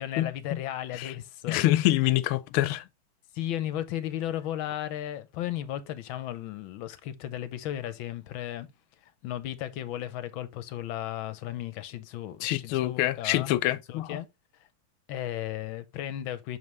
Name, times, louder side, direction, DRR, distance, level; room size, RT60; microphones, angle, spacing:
voice 1, 0.0-1.6 3.3-8.7 9.0-13.5 13.9-14.3 15.1-16.6, left 12 dB, 75° left, 1.5 m, -35 dB
voice 2, 1.5-2.8 12.4-14.2, left 15 dB, 90° left, 1.5 m, -26 dB
6.4 x 5.4 x 3.0 m
omnidirectional pair, 2.3 m